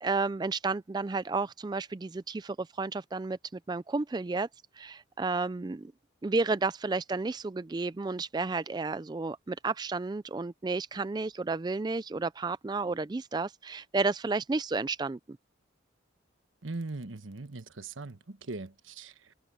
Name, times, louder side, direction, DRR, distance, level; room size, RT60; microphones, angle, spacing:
voice 1, 0.0-4.5 4.8-5.9 6.2-15.2, right 3 dB, 20° right, 0.3 m, -32 dB
voice 2, 16.6-19.3, right 3 dB, 85° right, 1.2 m, -40 dB
head